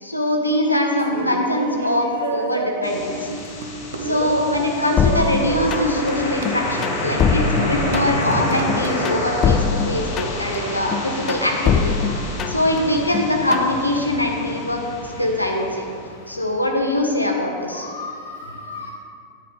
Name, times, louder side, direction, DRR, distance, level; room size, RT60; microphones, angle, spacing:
voice 1, 0.0-3.3 4.0-11.8 12.5-15.9 16.3-17.9, left 1 dB, 85° left, 1 dB, 1.2 m, -22 dB
Laughter, 1.0-9.1, right 4 dB, 60° right, 0.7 m, -30 dB
sound 1, 2.8-16.7, left 1 dB, 45° left, 1.6 m, -29 dB
sound 2, 5.0-6.1 6.4-8.3 8.7-10.6 10.9-12.8 13.1-13.7, left 6 dB, 30° left, 0.4 m, -22 dB
voice 2, 17.7-18.9, left 3 dB, 70° left, -1 dB, 0.8 m, -35 dB
10.0 x 9.4 x 3.3 m, 2.2 s
figure-of-eight pair, 90°, 0 cm